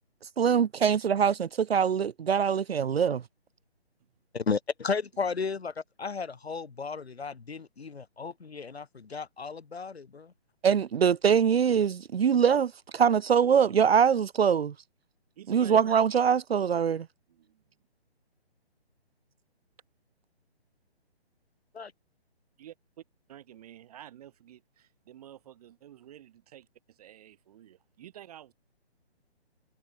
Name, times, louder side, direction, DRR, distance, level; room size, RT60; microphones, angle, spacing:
voice 1, 0.4-3.2 10.6-14.7 15.5-17.1, right 7 dB, 65° right, 0.7 m, -23 dB
voice 2, 4.3-10.3 21.7-21.9, left 5 dB, 70° left, 5.0 m, -34 dB
voice 3, 5.2-5.6 15.4-15.8 17.3-17.7 22.6-23.0 23.3-28.5, right 11 dB, 35° right, 5.0 m, -50 dB
figure-of-eight pair, 150°, 32 cm